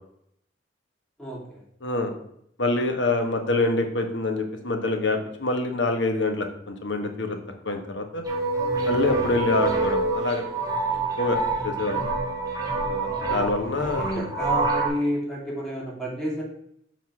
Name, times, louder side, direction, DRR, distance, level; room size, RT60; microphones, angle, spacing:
voice 1, 1.2-1.6 13.3-16.4, equal, 5° left, -5 dB, 2.6 m, -30 dB
voice 2, 1.8-2.1 2.6-7.4 7.6-8.2 8.9-10.4 10.9-11.4 11.6-12.0 12.7-14.0, left 2 dB, 80° left, 5 dB, 1.3 m, -26 dB
sound 1, 8.2-14.9, right 3 dB, 20° right, 1.8 m, -26 dB
7.2 x 3.9 x 6.1 m, 0.72 s
head